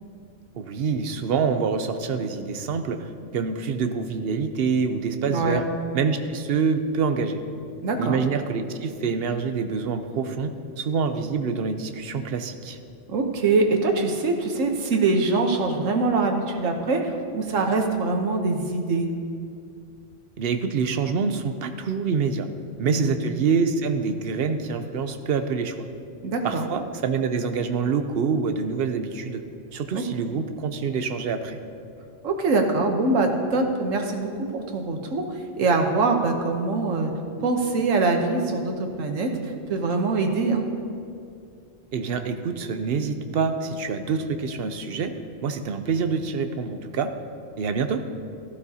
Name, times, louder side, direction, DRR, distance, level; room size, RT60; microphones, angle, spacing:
voice 1, 0.5-5.6 5.9-7.4 8.0-12.8 20.4-22.5 22.8-25.8 26.4-29.4 29.7-31.6 41.9-45.1 45.4-47.1 47.6-48.0, right 5 dB, 55° right, 8 dB, 0.8 m, -26 dB
voice 2, 5.3-5.6 7.8-8.2 13.1-19.1 22.8-23.1 26.2-26.7 29.9-30.3 32.2-37.1 37.4-40.6, right 3 dB, 75° right, 4 dB, 1.4 m, -24 dB
14.5 x 11.5 x 2.8 m, 2.4 s
omnidirectional pair, 1.4 m